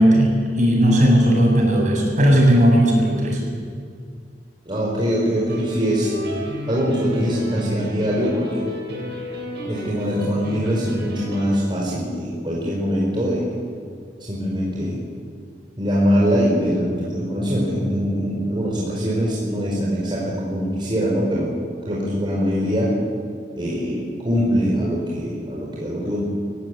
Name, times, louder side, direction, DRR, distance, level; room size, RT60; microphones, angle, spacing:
voice 1, 0.0-3.4, equal, 45° right, -1 dB, 7.4 m, -16 dB
voice 2, 1.0-1.4 4.7-6.1 6.7-8.6 9.6-13.5 14.3-15.0 15.8-21.5 21.9-22.9 23.5-26.2, equal, 30° right, -5 dB, 4.7 m, -23 dB
sound 1, 5.5-11.6, left 1 dB, 70° right, 7.4 m, -32 dB
25.5 x 16.5 x 9.6 m, 2.1 s
head